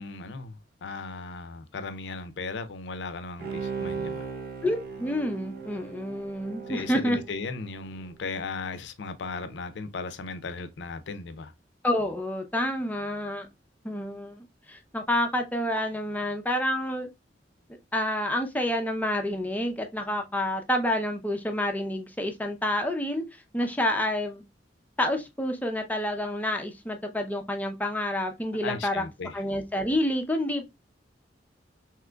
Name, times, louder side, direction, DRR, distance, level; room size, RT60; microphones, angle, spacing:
voice 1, 0.0-4.3 6.7-11.5 28.6-29.3, left 4 dB, 75° left, 0.5 m, -36 dB
Bowed string instrument, 3.4-8.0 8.4-8.5, right 5 dB, 55° right, 0.7 m, -37 dB
voice 2, 4.6-7.2 11.8-13.5 13.8-17.1 17.9-24.4 25.0-29.0 29.3-30.7, left 1 dB, 10° left, 0.5 m, -28 dB
3.6 x 2.8 x 2.2 m
head